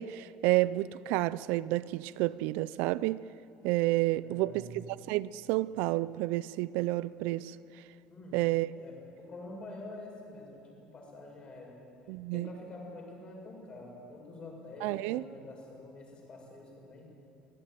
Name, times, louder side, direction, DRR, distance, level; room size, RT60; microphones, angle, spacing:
voice 1, 0.0-3.2 3.6-7.6 8.3-8.7 12.1-12.5 14.8-15.2, right 18 dB, 75° right, 0.5 m, -30 dB
voice 2, 4.1-4.8 8.1-11.8 12.3-17.1, left 2 dB, 30° left, 6.9 m, -47 dB
25.0 x 16.5 x 9.1 m
cardioid pair, 120°, 3 cm